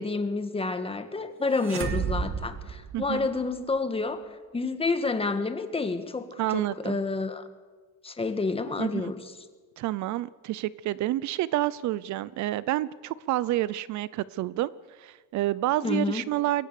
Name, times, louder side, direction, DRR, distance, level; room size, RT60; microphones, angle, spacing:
voice 1, 0.0-7.5 8.0-9.3 15.8-16.2, left 3 dB, 15° left, 9 dB, 1.6 m, -29 dB
sound 1, 1.6-3.6, right 6 dB, 40° right, 2.1 m, -32 dB
voice 2, 2.9-3.3 6.4-7.0 8.8-8.9 9.8-16.7, right 15 dB, 60° right, 19 dB, 0.6 m, -29 dB
22.5 x 17.5 x 6.7 m, 1.4 s
cardioid pair, 130°, 32 cm